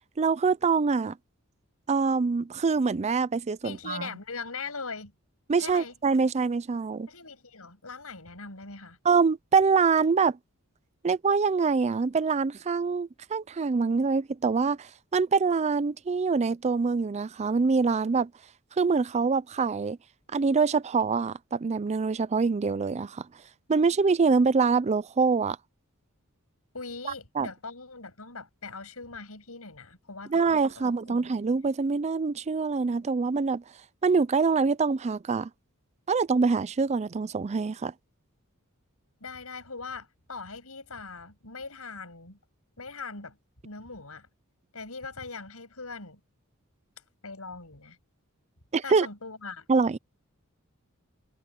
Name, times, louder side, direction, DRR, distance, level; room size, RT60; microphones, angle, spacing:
voice 1, 0.2-1.2 1.9-4.1 5.5-7.1 9.0-10.4 11.0-18.3 18.8-20.0 20.3-23.3 23.7-25.6 27.0-27.5 30.3-33.6 34.0-35.5 36.1-37.9 48.7-49.1 49.7-50.0, right 4 dB, 30° right, 0.4 m, -25 dB
voice 2, 3.6-5.1 5.6-5.9 7.1-9.0 26.7-31.3 39.2-42.4 42.8-43.4 43.6-44.3 44.7-46.2 47.2-48.0 48.8-49.7, left 4 dB, 75° left, 7.8 m, -41 dB
head